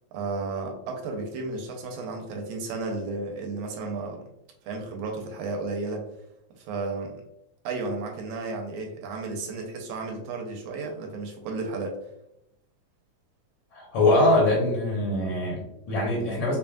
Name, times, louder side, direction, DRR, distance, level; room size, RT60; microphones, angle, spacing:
voice 1, 0.1-4.2 4.7-6.1 6.5-7.1 7.6-12.0, right 3 dB, 85° right, 2 dB, 2.0 m, -33 dB
voice 2, 13.7-16.6, left 2 dB, 60° left, -5 dB, 1.7 m, -23 dB
5.4 x 2.5 x 2.3 m, 0.83 s
omnidirectional pair, 3.5 m